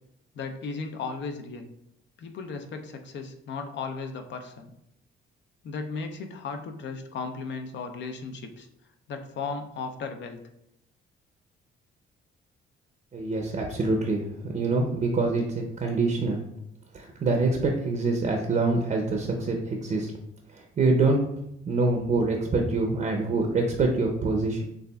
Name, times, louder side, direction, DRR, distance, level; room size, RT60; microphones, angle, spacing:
voice 1, 0.3-1.7 2.2-4.7 5.6-8.7 9.1-10.4, left 4 dB, 65° left, 5 dB, 0.6 m, -35 dB
voice 2, 13.1-16.5 16.9-20.1 20.5-21.2 21.6-24.6, right 3 dB, 40° right, 2 dB, 0.6 m, -25 dB
6.7 x 2.5 x 2.3 m, 0.79 s
cardioid pair, 90°, 20 cm